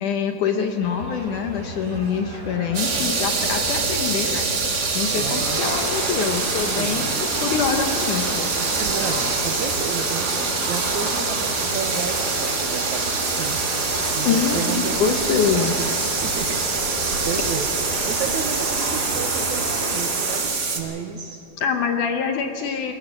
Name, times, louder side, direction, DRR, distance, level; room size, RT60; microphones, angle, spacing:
voice 1, 0.0-4.5 4.9-8.5 14.3-15.7 21.6-22.9, left 6 dB, 70° left, 5 dB, 2.1 m, -25 dB
sound 1, 0.8-19.7, right 1 dB, 90° right, 7.3 m, -36 dB
sound 2, 2.7-20.8, right 4 dB, 45° right, 1.3 m, -25 dB
voice 2, 5.1-5.6 6.7-7.2 8.6-13.6 14.1-17.7 18.1-21.4, right 6 dB, 70° right, 4 dB, 1.8 m, -32 dB
sound 3, 5.4-20.4, right 1 dB, 25° right, 5.7 m, -31 dB
21.0 x 18.0 x 7.4 m, 2.6 s
omnidirectional pair, 4.5 m